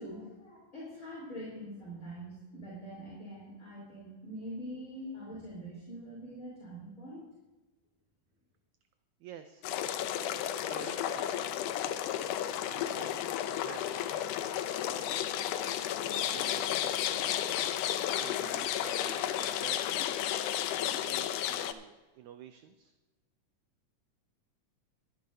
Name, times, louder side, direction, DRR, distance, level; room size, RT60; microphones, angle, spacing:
voice 1, 0.0-7.3, equal, 25° left, -7 dB, 4.0 m, -44 dB
voice 2, 9.2-9.7 10.4-11.6 12.7-14.2 14.7-15.2 16.1-17.3 18.1-20.2 20.6-22.9, right 9 dB, 80° right, 8 dB, 1.7 m, -50 dB
sound 1, 9.6-21.7, left 11 dB, 80° left, 2.1 m, -33 dB
22.0 x 10.5 x 2.7 m, 1.2 s
omnidirectional pair, 3.8 m